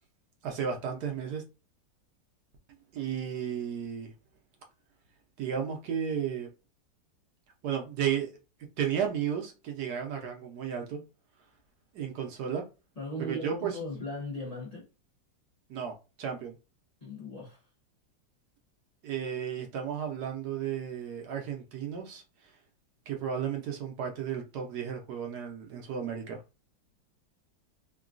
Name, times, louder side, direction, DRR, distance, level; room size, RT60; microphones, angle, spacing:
voice 1, 0.4-1.4 2.9-4.1 5.4-6.5 7.6-8.3 8.8-11.0 11.9-12.6 13.2-13.8 15.7-16.6 19.0-22.2 23.1-26.4, right 8 dB, 65° right, 1.2 m, -33 dB
voice 2, 13.0-14.9 17.0-17.7, equal, 50° left, 0.4 m, -38 dB
3.7 x 2.2 x 2.4 m
omnidirectional pair, 2.0 m